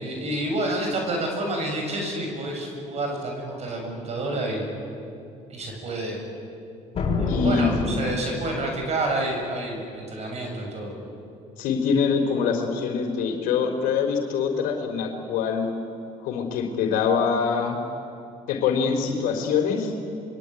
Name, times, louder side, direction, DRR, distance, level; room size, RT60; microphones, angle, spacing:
voice 1, 0.0-4.6 5.5-6.2 7.2-10.9, right 1 dB, 45° right, 2 dB, 7.4 m, -29 dB
sound 1, 6.9-8.7, left 3 dB, 40° left, 6.8 m, -27 dB
voice 2, 7.3-8.0 11.6-15.7 16.2-17.8 18.5-19.9, left 6 dB, 80° left, 3 dB, 3.8 m, -24 dB
25.0 x 22.5 x 9.4 m, 2.5 s
supercardioid pair, 95°, 15 cm